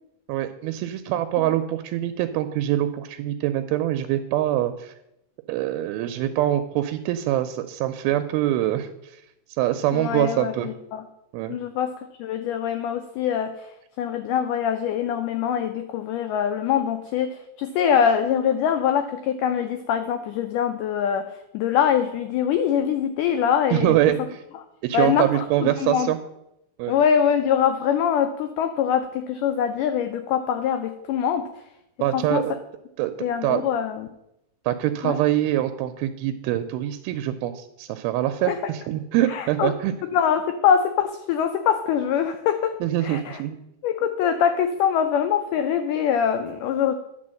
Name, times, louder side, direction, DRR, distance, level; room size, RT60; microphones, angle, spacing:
voice 1, 0.3-4.9 5.5-8.9 9.6-10.7 11.3-11.6 23.7-24.4 24.8-26.2 26.8-27.0 32.0-32.6 33.0-33.1 33.4-33.6 34.7-39.9 42.8-43.6, right 13 dB, 85° right, 9 dB, 2.4 m, -24 dB
voice 2, 9.9-11.0 11.5-11.9 12.2-13.5 14.0-21.2 21.5-24.0 24.9-26.1 26.9-31.5 32.1-32.4 33.2-34.1 35.0-35.2 38.5-38.6 39.3-39.7 40.1-42.8 43.0-43.4 43.8-46.9, left 8 dB, 90° left, 7 dB, 1.8 m, -23 dB
11.0 x 3.9 x 7.6 m, 0.83 s
omnidirectional pair, 4.4 m